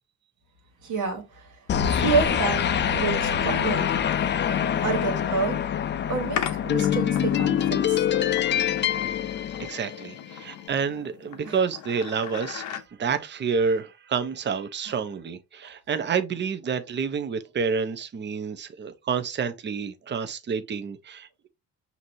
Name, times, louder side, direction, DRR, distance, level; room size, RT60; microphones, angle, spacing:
voice 1, 0.8-3.9 4.8-5.6 6.1-8.0 11.4-11.6 14.9-15.0 15.6-15.7, right 5 dB, 85° right, 1.6 m, -29 dB
sound 1, 1.7-10.2, left 9 dB, 40° left, 0.4 m, -25 dB
sound 2, 6.4-12.8, left 9 dB, 75° left, 0.7 m, -37 dB
voice 2, 9.6-21.5, right 6 dB, 35° right, 0.7 m, -29 dB
5.9 x 2.7 x 2.6 m
cardioid pair, 90°, 30 cm